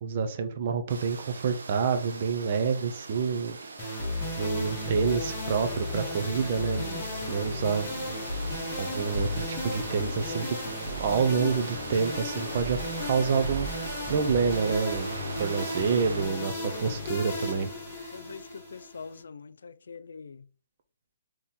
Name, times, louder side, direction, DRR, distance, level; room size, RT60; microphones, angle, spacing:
voice 1, 0.0-3.6 4.4-7.9 8.8-10.6 11.0-13.7 14.1-15.1 15.4-17.7, right 5 dB, 35° right, 0.6 m, -28 dB
sound 1, 0.9-16.2, right 3 dB, 80° right, 0.9 m, -41 dB
sound 2, 3.8-19.2, left 1 dB, 20° left, 1.6 m, -34 dB
voice 2, 18.1-20.5, left 5 dB, 75° left, 0.4 m, -44 dB
4.1 x 3.0 x 3.7 m
hypercardioid pair, 170°, 0 cm